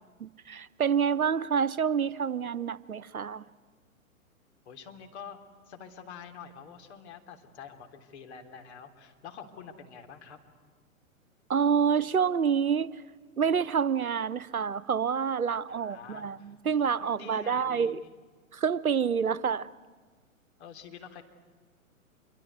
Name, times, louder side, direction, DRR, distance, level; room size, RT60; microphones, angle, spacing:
voice 1, 0.2-3.4 11.5-13.0 13.4-18.0 18.5-19.7, right 7 dB, 80° right, 0.9 m, -27 dB
voice 2, 4.6-5.4 5.7-10.4 15.7-16.5 17.0-18.1 20.6-21.2, left 7 dB, 50° left, 3.2 m, -47 dB
26.5 x 23.5 x 9.5 m
figure-of-eight pair, 110°, 42 cm